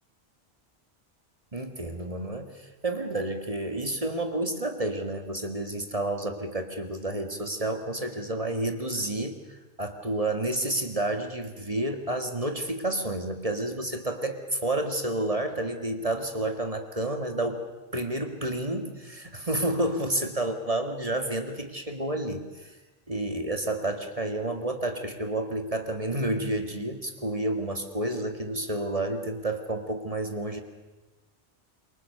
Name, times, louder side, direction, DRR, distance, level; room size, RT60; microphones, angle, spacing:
voice 1, 1.5-17.6 17.9-22.7 23.1-30.6, right 1 dB, 30° right, 6 dB, 1.9 m, -30 dB
27.5 x 23.5 x 6.8 m, 1.2 s
omnidirectional pair, 1.2 m